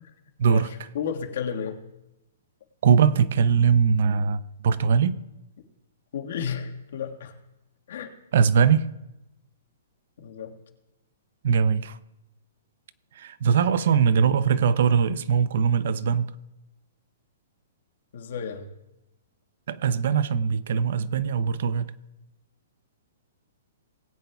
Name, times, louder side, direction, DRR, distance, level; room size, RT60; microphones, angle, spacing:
voice 1, 0.9-1.8 6.1-7.3 7.9-8.1 10.2-10.5 18.1-18.7, left 7 dB, 60° left, 1.6 m, -32 dB
voice 2, 2.8-5.2 8.3-8.9 11.4-12.0 13.2-16.3 19.7-21.9, right 6 dB, 60° right, 0.6 m, -21 dB
20.0 x 9.4 x 2.3 m
hypercardioid pair, 160°, 0 cm